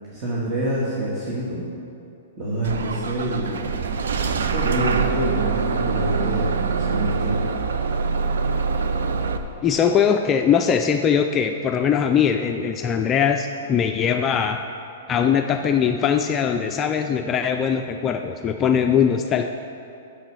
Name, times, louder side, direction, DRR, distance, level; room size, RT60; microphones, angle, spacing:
voice 1, 0.1-1.6 2.4-3.6 4.5-7.4, right 1 dB, 30° right, -7 dB, 2.0 m, -26 dB
Bus / Engine starting, 2.6-9.4, right 5 dB, 80° right, 0.6 m, -24 dB
voice 2, 9.6-14.6 15.1-19.5, left 7 dB, 25° left, 5 dB, 0.4 m, -21 dB
6.9 x 6.7 x 7.9 m, 2.7 s
hypercardioid pair, 135°, 0 cm